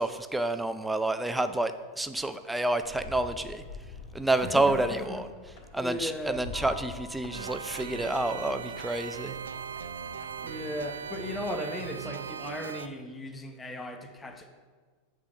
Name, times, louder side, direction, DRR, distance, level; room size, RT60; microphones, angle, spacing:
voice 1, 0.0-3.6 4.1-9.4, right 2 dB, 5° right, 10 dB, 0.4 m, -29 dB
sound 1, 2.8-11.5, left 3 dB, 60° left, 1.7 m, -47 dB
voice 2, 4.4-5.2 5.7-6.4 10.4-14.5, left 1 dB, 15° left, 5 dB, 0.8 m, -36 dB
sound 2, 6.5-9.2, left 1 dB, 75° left, 1.1 m, -52 dB
sound 3, 7.3-12.9, right 7 dB, 80° right, 0.3 m, -39 dB
8.1 x 3.6 x 4.8 m, 1.5 s
hypercardioid pair, 95°, 0 cm